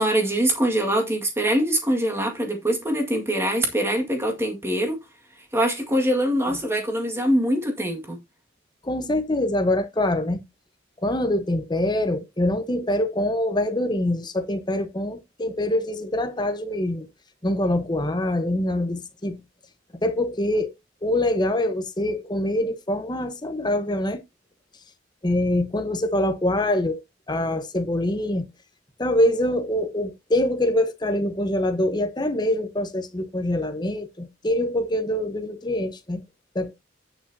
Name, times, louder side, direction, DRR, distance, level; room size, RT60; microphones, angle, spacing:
voice 1, 0.0-5.0 5.5-8.2, right 1 dB, 15° right, 1.9 m, -23 dB
voice 2, 8.8-10.4 11.0-17.1 17.4-19.4 20.0-20.7 21.0-24.2 25.2-27.0 27.3-28.5 29.0-36.2 36.5-36.7, left 1 dB, 20° left, 1.0 m, -24 dB
9.3 x 8.5 x 2.8 m
head